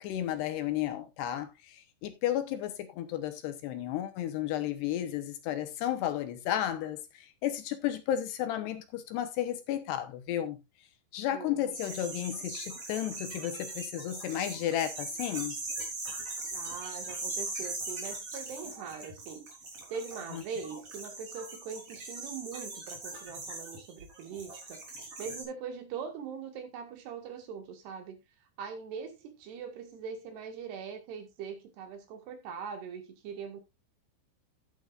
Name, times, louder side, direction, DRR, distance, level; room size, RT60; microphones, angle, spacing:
voice 1, 0.0-10.6 11.1-15.6, left 11 dB, 75° left, 3.1 m, -33 dB
voice 2, 11.3-11.7 16.5-19.5 19.9-24.8 25.2-28.2 28.6-33.6, right 6 dB, 70° right, 3.7 m, -42 dB
sound 1, 11.7-25.4, right 2 dB, 35° right, 4.4 m, -40 dB
11.5 x 11.0 x 2.5 m
omnidirectional pair, 5.1 m